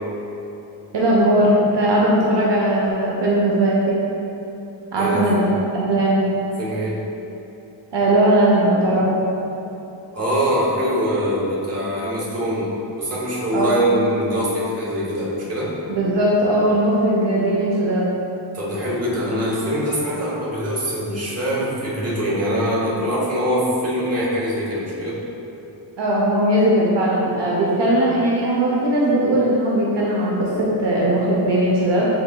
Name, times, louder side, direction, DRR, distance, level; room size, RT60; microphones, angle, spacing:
voice 1, 0.9-4.0 4.9-5.4 5.7-6.2 7.9-9.1 13.5-13.8 15.9-18.1 26.0-32.0, right 1 dB, 65° right, -5 dB, 0.7 m, -18 dB
voice 2, 5.0-5.5 6.6-6.9 10.1-15.7 18.5-25.2, equal, 30° right, -6 dB, 0.8 m, -23 dB
5.8 x 3.8 x 2.2 m, 3.0 s
wide cardioid pair, 165°, 47 cm